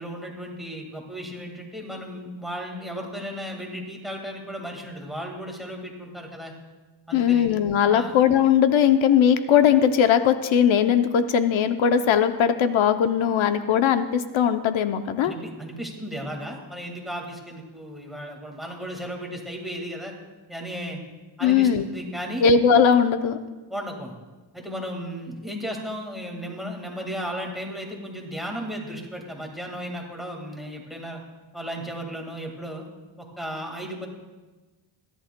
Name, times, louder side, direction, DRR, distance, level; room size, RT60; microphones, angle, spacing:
voice 1, 0.0-6.5 7.1-7.5 7.9-8.2 15.2-20.1 20.5-21.0 21.4-22.5 23.7-24.2 24.5-31.2 31.5-32.8 33.2-34.1, equal, ahead, 1 dB, 1.8 m, -35 dB
voice 2, 7.1-15.3 21.4-21.8 22.4-23.4, left 8 dB, 75° left, 9 dB, 0.7 m, -19 dB
26.5 x 11.0 x 2.2 m, 1.2 s
wide cardioid pair, 155°, 47 cm